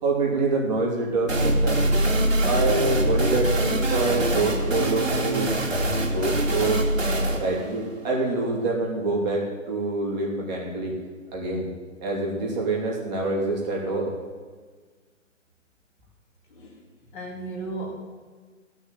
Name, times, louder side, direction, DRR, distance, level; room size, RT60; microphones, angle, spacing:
voice 1, 0.0-1.8 2.4-5.8 6.1-6.9 7.4-10.9 11.3-11.7 12.0-14.1, right 3 dB, 35° right, -2 dB, 3.3 m, -26 dB
sound 1, 1.3-8.7, right 1 dB, 75° right, 2.6 m, -24 dB
voice 2, 16.5-16.8 17.1-17.9, right 2 dB, 40° left, -1 dB, 3.3 m, -35 dB
15.5 x 6.5 x 8.5 m, 1.5 s
figure-of-eight pair, 135°, 39 cm